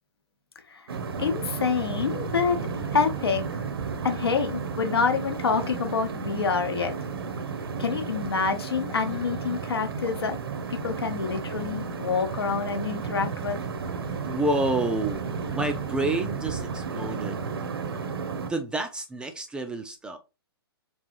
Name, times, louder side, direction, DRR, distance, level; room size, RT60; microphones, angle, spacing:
sound 1, 0.9-18.5, right 5 dB, 65° right, 0.7 m, -33 dB
voice 1, 1.2-2.6 2.9-3.4 4.0-6.9 7.8-10.4 10.7-13.6, left 5 dB, 70° left, 0.8 m, -27 dB
voice 2, 14.1-15.2 15.5-17.4 18.4-20.2, right 2 dB, 5° right, 0.3 m, -29 dB
3.5 x 3.2 x 2.9 m
figure-of-eight pair, 115°, 13 cm